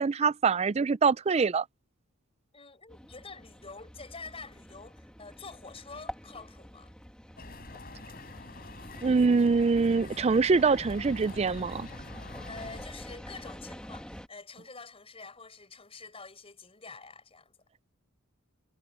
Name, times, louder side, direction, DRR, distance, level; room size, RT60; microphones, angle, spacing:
voice 1, 0.0-1.6 9.0-11.9, right 4 dB, 30° right, 0.3 m, -24 dB
voice 2, 2.5-6.9 12.5-17.5, left 4 dB, 25° left, 5.9 m, -47 dB
sound 1, 2.9-14.3, equal, 5° left, 1.7 m, -47 dB
sound 2, 7.4-12.9, left 2 dB, 40° left, 7.4 m, -45 dB
head